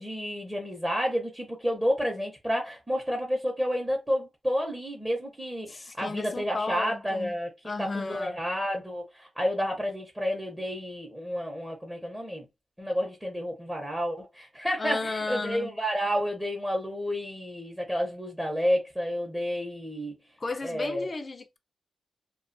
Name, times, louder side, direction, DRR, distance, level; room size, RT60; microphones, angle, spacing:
voice 1, 0.0-7.5 7.8-12.4 12.8-20.1 20.6-21.1, equal, 10° right, 0.8 m, -30 dB
voice 2, 5.7-7.3 7.6-8.4 14.8-15.8 20.4-21.6, left 3 dB, 35° left, 0.5 m, -34 dB
2.4 x 2.3 x 2.6 m
cardioid pair, 80°, 0 cm